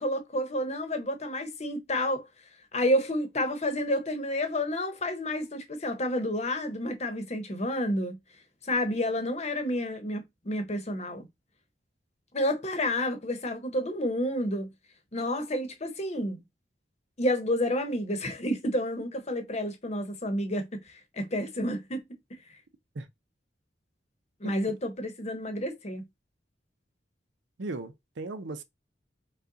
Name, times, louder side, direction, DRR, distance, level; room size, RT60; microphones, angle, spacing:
voice 1, 0.0-2.3 2.7-8.2 8.6-11.3 12.3-14.7 15.1-16.4 17.2-22.0 24.4-26.0, left 1 dB, 35° left, 1.0 m, -30 dB
voice 2, 27.6-28.6, right 2 dB, 75° right, 0.6 m, -37 dB
5.3 x 2.3 x 3.9 m
head